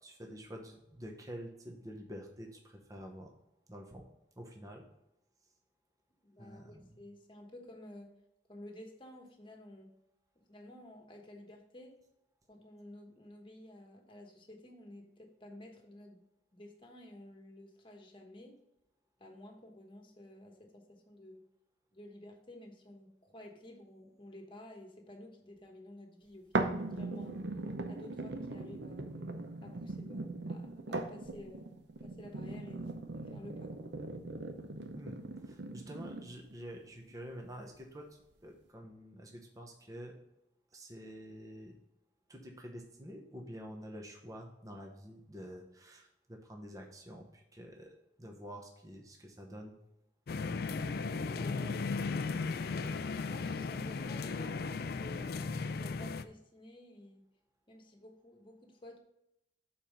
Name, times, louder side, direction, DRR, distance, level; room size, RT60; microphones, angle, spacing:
voice 1, 0.0-3.3 3.7-4.0 4.4-4.8 6.4-7.0 34.9-38.1 38.4-40.1 40.7-41.7 42.3-49.8, equal, 20° right, 2 dB, 0.9 m, -48 dB
voice 2, 6.2-8.1 8.5-9.9 10.5-12.0 12.5-16.2 16.5-18.6 19.2-21.4 21.9-27.4 27.9-29.1 29.6-31.7 32.0-33.9 51.2-51.9 52.5-55.4 55.7-57.2 57.7-59.0, left 1 dB, 25° left, 2 dB, 1.2 m, -52 dB
sound 1, 26.5-36.5 37.1-37.2, right 2 dB, 70° right, 0.7 m, -39 dB
sound 2, 50.3-56.2, left 4 dB, 55° left, 0.4 m, -36 dB
6.9 x 4.4 x 5.3 m, 0.84 s
head